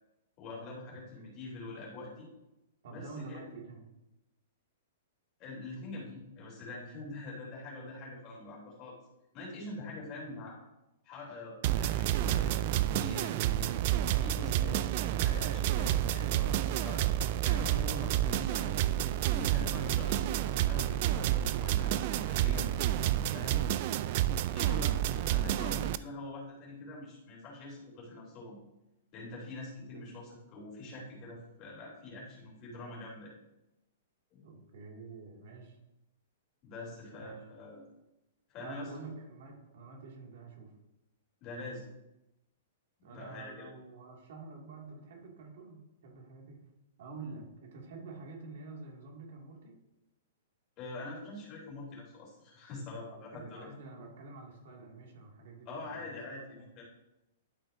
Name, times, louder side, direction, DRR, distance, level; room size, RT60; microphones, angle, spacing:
voice 1, 0.4-2.3 2.9-3.4 5.4-9.0 9.3-10.6 11.0-13.7 14.2-17.1 17.4-18.9 19.3-22.7 23.3-23.7 24.5-28.6 29.1-33.3 34.3-34.4 36.6-37.8 38.5-38.9 41.4-41.8 43.1-43.7 50.8-53.7 55.6-56.8, left 2 dB, 30° left, -3 dB, 3.2 m, -44 dB
voice 2, 0.9-1.4 2.8-3.8 10.3-10.5 24.0-24.2 24.6-24.8 29.9-30.0 34.4-35.8 37.1-37.3 38.6-40.7 43.0-46.6 47.0-49.8 53.3-56.1 56.4-56.6, right 3 dB, 65° right, -1 dB, 2.2 m, -48 dB
sound 1, 11.6-26.0, right 12 dB, 45° right, 0.3 m, -29 dB
12.0 x 6.0 x 2.6 m, 0.92 s
hypercardioid pair, 155°, 0 cm